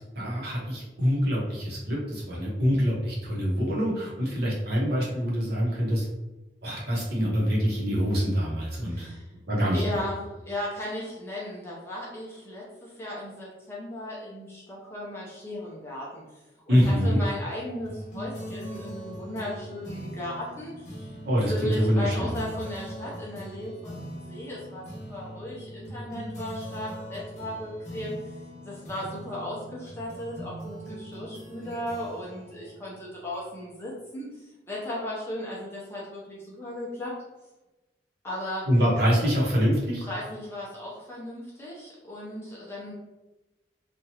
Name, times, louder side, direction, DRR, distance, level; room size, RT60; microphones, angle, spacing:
voice 1, 0.1-6.1 6.6-9.1 9.5-9.8 16.7-17.2 21.2-22.4 38.7-40.0, equal, 60° right, -5 dB, 1.0 m, -25 dB
voice 2, 8.8-9.3 9.7-16.2 16.7-21.2 21.5-28.1 28.6-37.1 38.2-38.7 40.0-42.9, left 1 dB, 15° left, -6 dB, 0.5 m, -36 dB
sound 1, 17.8-33.7, equal, 45° left, 1.0 m, -41 dB
2.9 x 2.4 x 2.8 m, 1.1 s
head